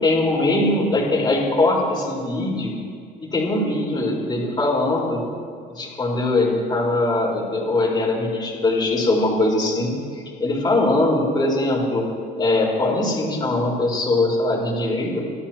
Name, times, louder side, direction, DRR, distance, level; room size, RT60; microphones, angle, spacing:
voice 1, 0.0-2.7 3.2-5.2 5.7-12.1 12.4-15.2, left 2 dB, 25° left, -4 dB, 5.3 m, -21 dB
29.5 x 13.0 x 3.1 m, 2.2 s
cardioid pair, 110°, 17 cm